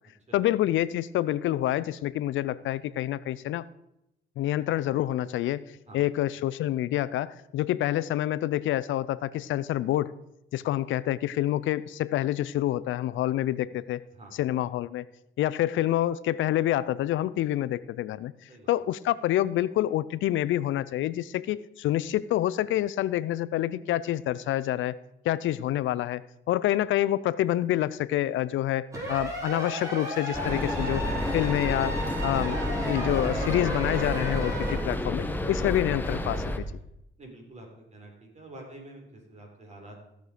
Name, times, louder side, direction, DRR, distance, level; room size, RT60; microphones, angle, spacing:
voice 1, 0.3-3.6 4.4-5.6 5.9-10.1 10.5-14.0 14.4-15.0 15.4-18.3 18.7-25.0 25.2-26.2 26.5-31.0 31.3-36.6, left 13 dB, 75° left, 18 dB, 0.5 m, -27 dB
sound 1, 28.9-34.8, right 1 dB, 15° right, 5.2 m, -34 dB
sound 2, 30.3-36.6, left 1 dB, 10° left, 1.2 m, -30 dB
voice 2, 37.2-40.0, right 1 dB, 35° right, 1 dB, 3.9 m, -47 dB
16.0 x 6.5 x 5.0 m, 0.84 s
cardioid pair, 90°, 20 cm